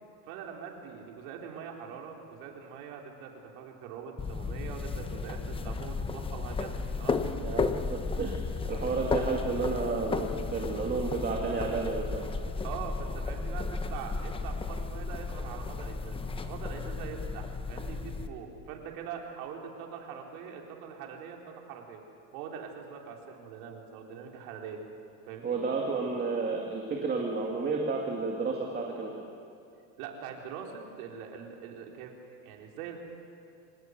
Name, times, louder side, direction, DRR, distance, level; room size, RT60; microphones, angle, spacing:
voice 1, 0.3-7.2 12.6-22.0 22.3-24.8 25.3-25.6 30.0-32.1 32.4-33.0, right 7 dB, 70° right, 1 dB, 4.2 m, -43 dB
sound 1, 4.2-18.3, left 4 dB, 10° left, 0.8 m, -34 dB
voice 2, 7.4-12.3 25.4-29.2, right 4 dB, 20° right, 0 dB, 2.2 m, -31 dB
26.0 x 18.0 x 8.1 m, 2.6 s
cardioid pair, 155°, 45 cm